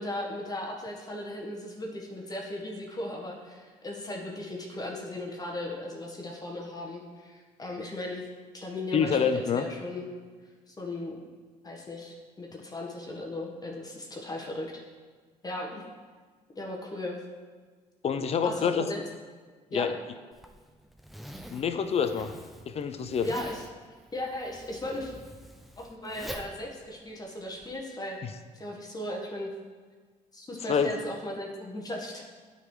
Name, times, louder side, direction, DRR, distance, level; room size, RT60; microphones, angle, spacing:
voice 1, 0.0-8.2 8.5-10.1 10.7-11.2 11.6-14.7 15.4-15.9 16.5-17.2 18.4-19.0 19.7-19.9 23.2-23.6 24.1-25.1 25.8-28.2 28.5-29.5 30.3-32.2, left 1 dB, 25° left, -1 dB, 1.3 m, -37 dB
voice 2, 8.9-9.6 18.0-18.9 19.7-20.0 21.5-22.3 22.7-23.3 30.7-30.9, left 6 dB, 50° left, 9 dB, 0.6 m, -26 dB
Zipper (clothing), 20.3-27.7, equal, ahead, 0.6 m, -46 dB
9.1 x 4.1 x 4.8 m, 1.5 s
supercardioid pair, 75°, 14 cm